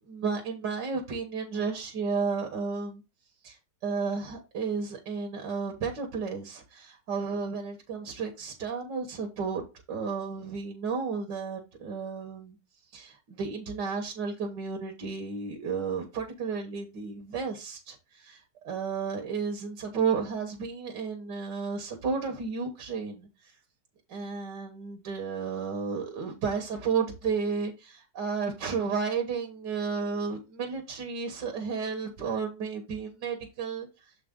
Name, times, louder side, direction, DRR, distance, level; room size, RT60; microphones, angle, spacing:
voice 1, 0.1-3.0 3.4-3.6 3.8-12.6 12.9-23.3 24.1-33.9, right 5 dB, 85° right, 2.0 m, -32 dB
6.9 x 5.1 x 3.6 m
omnidirectional pair, 1.8 m